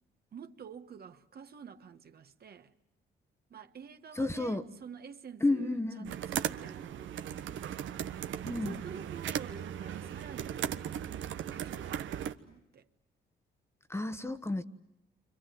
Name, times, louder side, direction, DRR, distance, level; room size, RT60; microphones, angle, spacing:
voice 1, 0.3-2.7 3.5-7.8 8.4-11.1 11.3-12.9, right 7 dB, 50° right, 1.6 m, -49 dB
voice 2, 4.2-4.6 5.4-6.1 8.4-8.7 13.9-14.6, left 2 dB, 15° left, 1.4 m, -31 dB
sound 1, 6.0-12.3, right 10 dB, 75° right, 1.2 m, -37 dB
29.5 x 25.5 x 7.8 m
cardioid pair, 90°, 20 cm